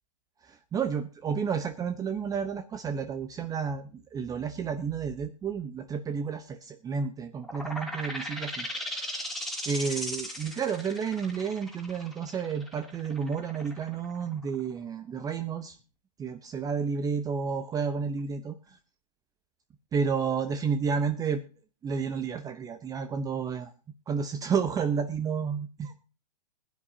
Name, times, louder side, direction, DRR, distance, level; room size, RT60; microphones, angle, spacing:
voice 1, 0.7-8.7 8.9-9.1 9.7-15.8 16.2-18.8 19.9-21.4 21.8-23.7 24.1-25.9, right 6 dB, 15° right, 9 dB, 0.9 m, -31 dB
sound 1, 7.4-14.8, equal, ahead, 3.0 m, -37 dB
21.0 x 9.8 x 2.8 m, 0.33 s
hypercardioid pair, 125°, 21 cm